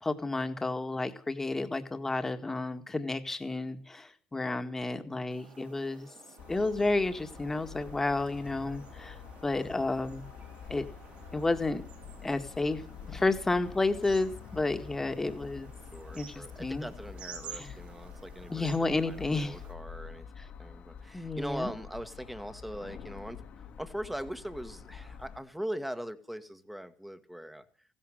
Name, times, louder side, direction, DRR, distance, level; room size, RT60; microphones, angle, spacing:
voice 1, 0.0-6.1 6.5-10.3 10.7-10.9 11.3-11.8 12.2-12.8 13.1-15.7 16.1-16.9 17.5-17.7 18.5-19.6 20.4-20.5 21.1-21.7, left 2 dB, 15° left, 7 dB, 1.9 m, -31 dB
sound 1, 5.3-19.7, right 7 dB, 65° right, 5.8 m, -52 dB
sound 2, 6.4-25.4, left 7 dB, 55° left, 2.0 m, -47 dB
voice 2, 15.9-20.3 20.6-23.4 23.8-27.6, equal, 5° right, 11 dB, 1.6 m, -41 dB
15.5 x 11.5 x 7.7 m, 0.43 s
cardioid pair, 105°, 3 cm